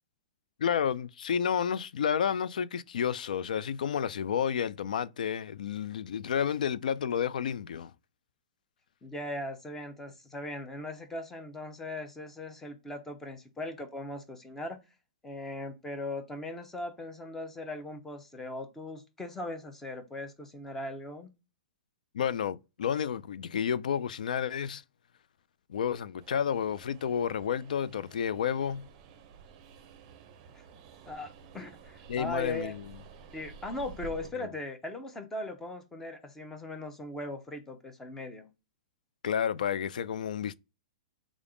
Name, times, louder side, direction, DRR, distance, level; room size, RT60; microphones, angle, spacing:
voice 1, 0.6-7.9 22.1-24.8 25.7-28.9 32.1-33.0 34.4-34.5 39.2-40.6, left 8 dB, 85° left, 0.3 m, -31 dB
voice 2, 9.0-14.8 15.2-21.3 30.5-30.6 31.1-32.7 33.3-38.5, left 1 dB, 10° left, 0.6 m, -39 dB
Train, 26.2-34.3, right 5 dB, 35° right, 0.6 m, -51 dB
3.4 x 2.4 x 3.8 m
hypercardioid pair, 155°, 4 cm